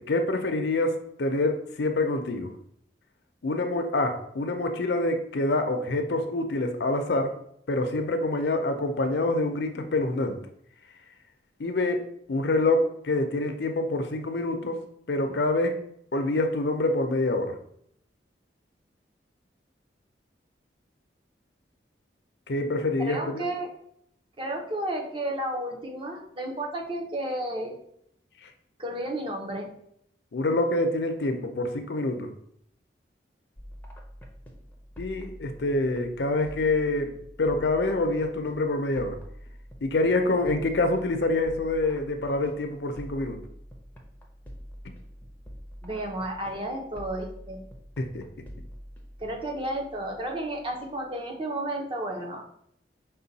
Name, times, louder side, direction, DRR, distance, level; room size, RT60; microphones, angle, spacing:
voice 1, 0.0-2.5 3.4-7.4 7.7-10.4 11.6-12.0 12.3-14.8 15.1-15.8 16.1-17.6 22.5-23.5 28.4-28.5 30.3-32.3 35.0-39.2 39.8-43.4 48.0-48.3, left 2 dB, 70° left, 6 dB, 0.6 m, -26 dB
voice 2, 23.0-23.7 24.4-27.8 28.8-29.7 45.8-47.6 49.2-52.5, right 1 dB, 30° right, 1 dB, 0.7 m, -32 dB
sound 1, 33.6-51.2, equal, 10° left, 0.6 m, -46 dB
5.4 x 2.2 x 4.0 m, 0.70 s
head